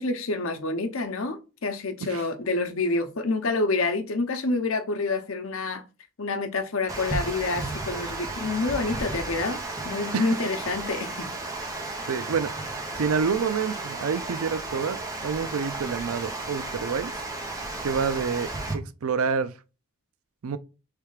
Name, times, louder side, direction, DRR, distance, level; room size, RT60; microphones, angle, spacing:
voice 1, 0.0-5.8 6.2-11.3, left 3 dB, 75° left, 0.8 m, -28 dB
Water, 6.9-18.7, right 2 dB, 15° right, 0.9 m, -34 dB
voice 2, 12.1-12.6 13.0-17.1 17.8-19.5 20.4-20.6, right 6 dB, 85° right, 0.5 m, -28 dB
3.4 x 3.3 x 4.8 m
head